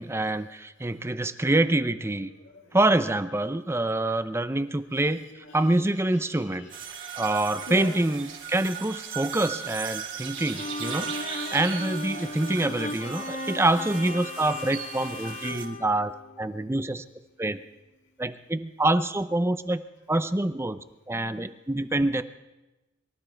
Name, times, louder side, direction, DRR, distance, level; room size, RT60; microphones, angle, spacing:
voice 1, 0.0-2.3 2.7-6.7 7.2-17.0 17.4-17.6 18.2-19.8 20.1-22.2, right 2 dB, 15° right, 12 dB, 0.6 m, -26 dB
voice 2, 2.4-2.8 4.0-4.1 5.5-5.7 6.3-7.3 7.7-8.0 10.3-10.4, left 2 dB, 65° left, 0 dB, 2.1 m, -43 dB
sound 1, 6.7-15.6, right 8 dB, 65° right, 3.8 m, -38 dB
Bowed string instrument, 10.5-16.8, left 2 dB, 35° left, 0.8 m, -37 dB
23.5 x 13.0 x 4.5 m, 1.0 s
head